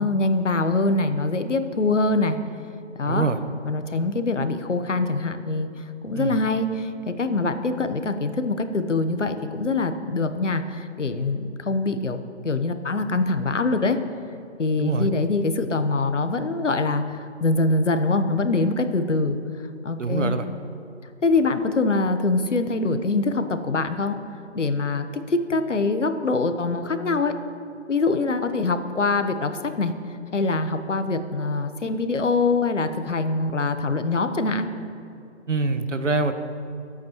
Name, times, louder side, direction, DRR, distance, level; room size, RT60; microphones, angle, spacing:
voice 1, 0.0-2.4 3.0-3.3 3.6-14.0 14.6-19.4 19.8-20.3 21.2-24.1 24.5-27.3 27.9-29.9 30.3-34.7, left 3 dB, 80° left, 8 dB, 1.2 m, -24 dB
voice 2, 3.1-3.4 6.1-6.4 14.8-15.1 20.0-20.5 35.5-36.3, right 3 dB, 85° right, 9 dB, 1.1 m, -24 dB
25.0 x 8.5 x 3.1 m, 2.5 s
figure-of-eight pair, 160°, 36 cm